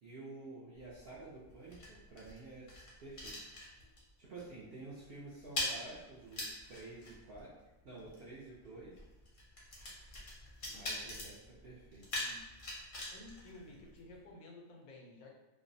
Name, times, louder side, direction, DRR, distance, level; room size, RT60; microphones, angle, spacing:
voice 1, 0.0-2.7 3.0-3.3 4.2-7.5 7.8-9.0 10.7-12.2 13.7-13.8, right 3 dB, 65° right, -7 dB, 0.6 m, -50 dB
sound 1, 0.7-4.1 4.4-4.6 4.9-14.3, left 1 dB, 55° left, 0.6 m, -44 dB
voice 2, 13.1-15.3, left 2 dB, 85° left, 0 dB, 1.0 m, -54 dB
2.5 x 2.0 x 2.6 m, 1.1 s
omnidirectional pair, 1.5 m